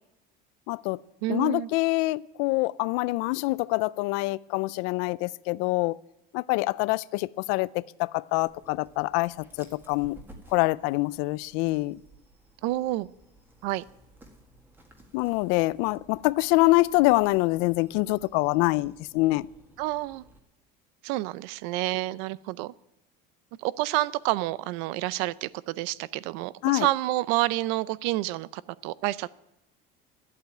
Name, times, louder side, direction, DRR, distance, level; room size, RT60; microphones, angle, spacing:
voice 1, 0.7-1.0 1.3-6.0 6.3-10.2 10.5-12.0 15.1-19.5 26.6-26.9, left 21 dB, 75° left, 0.5 m, -25 dB
voice 2, 1.2-1.7 12.6-13.1 13.6-13.8 19.8-20.2 21.0-22.7 23.6-29.3, right 17 dB, 80° right, 0.6 m, -29 dB
Dog, 8.3-20.4, right 1 dB, 10° right, 1.7 m, -55 dB
12.5 x 8.4 x 9.1 m
cardioid pair, 175°, 21 cm